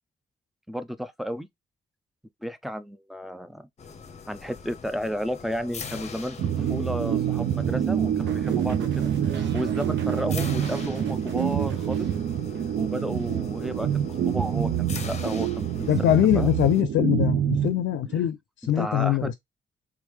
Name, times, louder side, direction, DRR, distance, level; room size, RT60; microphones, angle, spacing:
voice 1, 0.7-1.5 2.4-3.7 4.3-12.1 12.8-16.5 18.6-19.3, equal, ahead, 0.4 m, -33 dB
sound 1, 3.8-16.8, left 6 dB, 35° left, 0.7 m, -42 dB
sound 2, 6.4-18.3, right 9 dB, 60° right, 0.5 m, -26 dB
sound 3, 8.3-12.7 13.0-13.4, right 8 dB, 85° right, 0.8 m, -44 dB
voice 2, 15.9-19.3, left 11 dB, 90° left, 0.5 m, -23 dB
3.5 x 3.3 x 3.4 m
cardioid pair, 120°, 19 cm